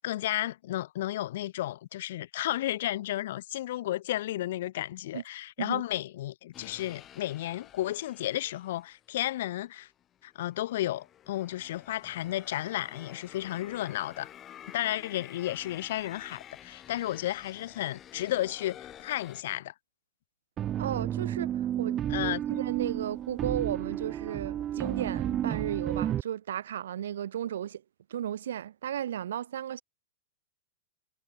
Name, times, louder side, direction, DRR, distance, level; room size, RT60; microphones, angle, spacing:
voice 1, 0.0-9.9 10.2-14.3 14.7-19.7 22.1-22.4, left 14 dB, 65° left, 2.2 m, -33 dB
sound 1, 6.5-9.1 9.8-19.4, left 10 dB, 25° left, 2.8 m, -50 dB
sound 2, 20.6-26.2, right 11 dB, 30° right, 1.9 m, -31 dB
voice 2, 20.8-27.8 28.1-29.8, right 10 dB, 80° right, 3.2 m, -35 dB
hypercardioid pair, 130°, 0 cm